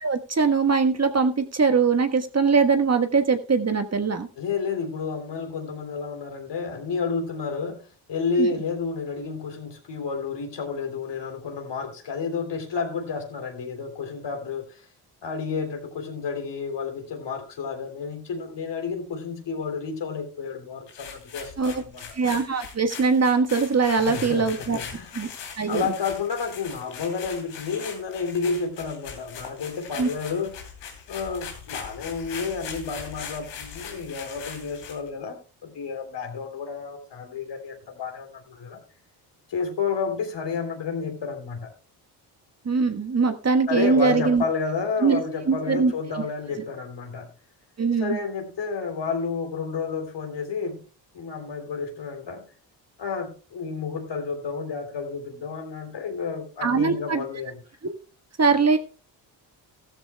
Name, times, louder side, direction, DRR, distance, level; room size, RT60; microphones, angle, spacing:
voice 1, 0.0-4.3 8.4-8.5 21.6-21.8 22.1-24.8 25.1-25.3 25.6-25.9 30.0-30.1 42.6-44.4 45.0-45.2 45.5-45.9 47.8-48.2 56.6-57.2 58.4-58.8, right 5 dB, 30° right, 1.4 m, -21 dB
voice 2, 4.4-14.8 15.2-22.1 24.0-25.2 25.7-30.6 31.1-35.4 35.6-38.8 39.5-41.7 43.7-47.3 48.0-50.8 51.1-52.5 53.0-57.6, left 5 dB, 60° left, 3.3 m, -31 dB
sound 1, 20.9-35.1, left 7 dB, 90° left, 3.1 m, -40 dB
15.0 x 13.5 x 2.2 m
supercardioid pair, 55°, 48 cm